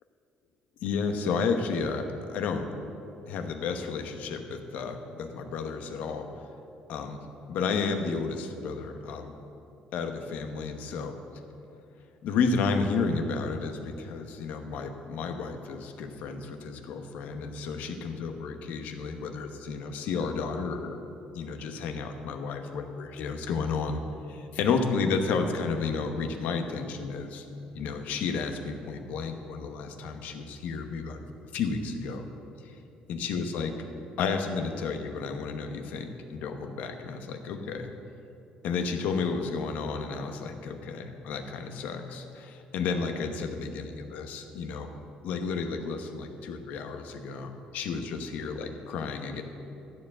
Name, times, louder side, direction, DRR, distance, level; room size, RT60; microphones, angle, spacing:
voice 1, 0.8-2.7 3.3-6.4 6.9-7.2 7.5-9.3 9.9-11.1 12.2-21.0 21.3-24.0 24.3-27.4 27.7-31.2 31.5-32.2 32.6-32.8 33.1-33.7 34.2-37.9 38.6-44.9 45.2-49.4, left 5 dB, 75° left, 6 dB, 1.0 m, -32 dB
13.0 x 4.7 x 8.6 m, 2.7 s
cardioid pair, 145°, 3 cm